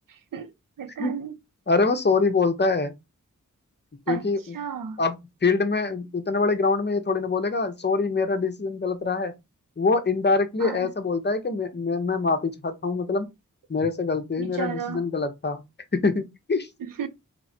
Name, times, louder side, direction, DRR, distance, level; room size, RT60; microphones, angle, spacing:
voice 1, 0.8-1.4 4.1-4.2 4.5-5.0 10.6-10.9 14.4-15.0 16.8-17.1, right 8 dB, 85° right, 0.5 m, -33 dB
voice 2, 1.7-2.9 4.1-4.4 5.0-5.2 5.4-9.3 9.8-13.3 13.7-15.6 15.9-16.7, left 4 dB, 35° left, 0.7 m, -24 dB
3.1 x 3.0 x 2.6 m
wide cardioid pair, 45°, 32 cm